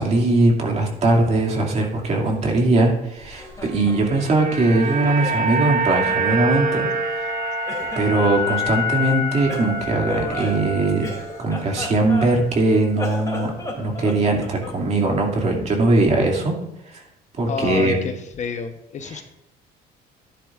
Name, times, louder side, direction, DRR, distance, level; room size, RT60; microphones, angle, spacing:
voice 1, 0.0-6.9 8.0-11.0 11.4-16.5 16.9-17.0 17.4-18.0, right 2 dB, 40° right, 0 dB, 2.4 m, -20 dB
Laughter, 3.2-5.5 5.8-7.4 7.6-8.8 9.5-12.6 12.9-14.8, left 2 dB, 20° left, 2.7 m, -34 dB
sound 1, 3.8-12.1 12.3-12.5, right 1 dB, 55° right, 1.2 m, -26 dB
voice 2, 17.5-19.2, left 6 dB, 45° left, 7 dB, 0.9 m, -29 dB
13.0 x 10.0 x 2.5 m, 0.85 s
cardioid pair, 110°, 17 cm